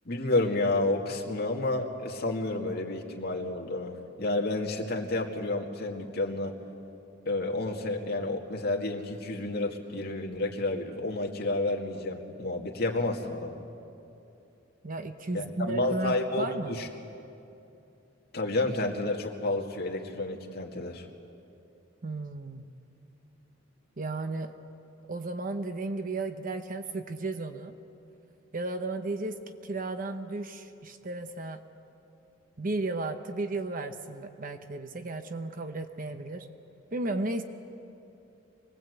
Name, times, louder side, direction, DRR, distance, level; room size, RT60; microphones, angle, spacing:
voice 1, 0.1-6.5 7.3-13.6 15.3-16.9 18.3-21.0, left 2 dB, 55° left, 0 dB, 2.2 m, -30 dB
voice 2, 14.8-16.8 22.0-22.7 24.0-24.5 25.1-27.7 28.5-31.6 32.6-36.5 36.9-37.4, right 2 dB, 45° right, 8 dB, 0.9 m, -34 dB
25.0 x 20.5 x 8.1 m, 2.8 s
head